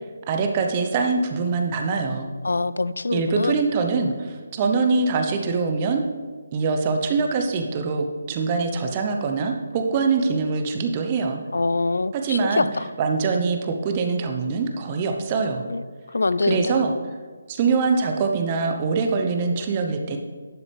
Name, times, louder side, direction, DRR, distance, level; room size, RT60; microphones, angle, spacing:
voice 1, 0.3-2.3 3.1-6.0 6.5-11.4 12.1-12.7 13.0-15.6 16.4-16.9 17.5-20.2, right 4 dB, 25° right, 4 dB, 0.9 m, -23 dB
voice 2, 2.4-3.6 11.5-12.9 15.7-15.8 16.1-16.7, left 3 dB, 70° left, 16 dB, 0.4 m, -24 dB
11.5 x 7.0 x 3.4 m, 1.5 s
figure-of-eight pair, 150°, 0 cm